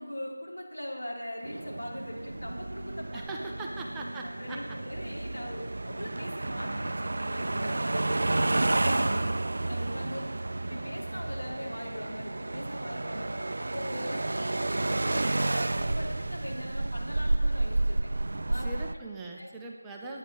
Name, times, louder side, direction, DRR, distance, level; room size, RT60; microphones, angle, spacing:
voice 1, 0.0-3.2 4.2-9.3 9.6-10.3 10.5-13.3 13.6-18.0 18.5-18.7 19.4-19.5, left 1 dB, 80° left, -2 dB, 3.5 m, -41 dB
sound 1, 1.4-18.9, right 2 dB, 55° right, 0.4 m, -31 dB
voice 2, 3.1-4.6 18.5-20.2, right 2 dB, 5° right, -1 dB, 0.6 m, -40 dB
9.9 x 9.3 x 6.3 m, 1.4 s
figure-of-eight pair, 170°, 0 cm